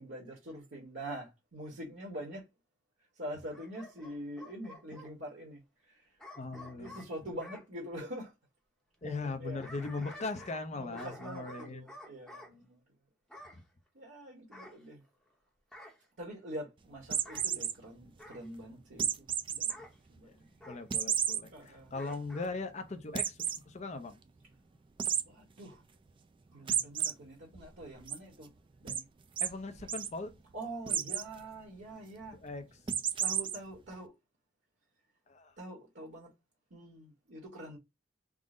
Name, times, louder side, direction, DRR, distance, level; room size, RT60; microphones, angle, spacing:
voice 1, 0.0-2.4 3.2-6.2 6.4-8.3 9.0-9.6 10.7-12.8 13.9-15.0 16.2-19.8 20.1-20.5 21.5-21.9 23.0-23.2 25.3-25.8 26.5-28.5 28.8-29.1 30.5-32.4 33.2-34.1 35.6-36.3 36.7-37.8, right 1 dB, 60° right, 1.1 m, -45 dB
Bark / Growling, 3.5-5.1 6.2-7.7 9.3-10.7 10.9-12.5 13.3-13.6 14.5-15.3 15.7-16.0 17.1-17.5 18.2-18.5 19.7-19.9 20.6-20.8 21.9-22.5 22.9-23.0, left 1 dB, 5° left, 0.7 m, -51 dB
voice 2, 6.4-7.0 9.0-11.9 13.5-13.6 20.2-20.4 20.7-24.2 29.4-30.3 32.3-32.6 35.3-35.5, left 3 dB, 35° left, 0.5 m, -39 dB
sound 1, 17.1-17.7 19.0-19.7 20.2-20.3 20.9-21.4 21.9-22.0 22.3-22.4 23.2-23.6 25.0-25.2 26.7-27.1 27.6-28.2 28.9-29.0 29.4-29.5 29.8-30.1 30.9-31.3 32.9-33.6, right 8 dB, 25° right, 0.3 m, -31 dB
3.7 x 2.0 x 3.6 m
head